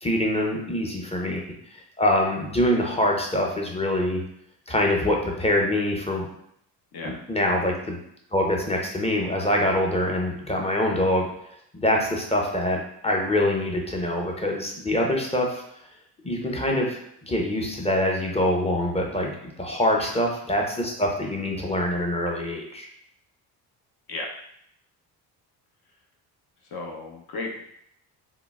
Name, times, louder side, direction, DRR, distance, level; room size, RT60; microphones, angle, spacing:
voice 1, 0.0-1.4 2.0-4.2 4.7-6.3 7.0-8.0 8.3-11.2 11.7-15.6 16.2-17.0 17.3-19.3 19.6-22.9, left 1 dB, 15° left, 0 dB, 0.7 m, -24 dB
voice 2, 1.0-1.4 6.9-7.2 19.9-20.1 24.1-24.3 26.7-27.6, left 3 dB, 50° left, 1 dB, 0.8 m, -35 dB
3.7 x 2.2 x 2.3 m, 0.71 s
hypercardioid pair, 55°, 49 cm